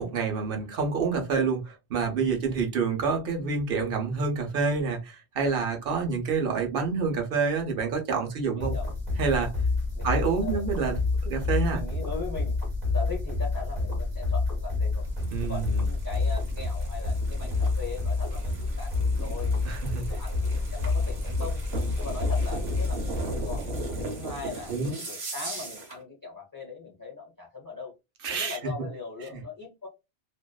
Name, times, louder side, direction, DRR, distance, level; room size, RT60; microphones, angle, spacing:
voice 1, 0.0-8.7 9.2-9.5 10.0-11.0 11.2-11.8 15.3-15.8 19.6-20.1 24.7-24.9 28.2-28.6, right 5 dB, 65° right, 0.9 m, -27 dB
voice 2, 8.6-8.9 9.9-11.0 11.6-12.6 12.9-15.1 15.4-21.6 22.0-23.6 24.0-27.9 28.3-29.9, left 4 dB, 25° left, 0.5 m, -40 dB
sound 1, 8.6-24.1, left 3 dB, 45° right, 1.0 m, -29 dB
sound 2, 15.0-26.0, right 3 dB, 80° right, 1.1 m, -39 dB
2.5 x 2.2 x 2.2 m
omnidirectional pair, 1.1 m